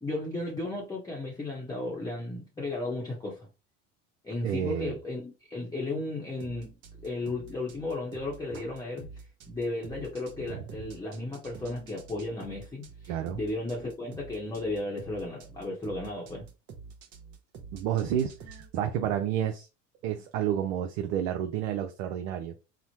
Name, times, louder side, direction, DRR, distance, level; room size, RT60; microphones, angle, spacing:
voice 1, 0.0-3.5 4.2-6.8 7.0-9.1 9.5-16.5, left 2 dB, 10° left, 0.8 m, -34 dB
voice 2, 4.4-4.9 10.5-10.6 13.1-13.4 17.7-19.7 20.0-22.5, right 10 dB, 75° right, 0.6 m, -30 dB
sound 1, 6.4-18.7, right 5 dB, 50° right, 0.9 m, -48 dB
3.0 x 2.0 x 2.8 m
hypercardioid pair, 85°, 37 cm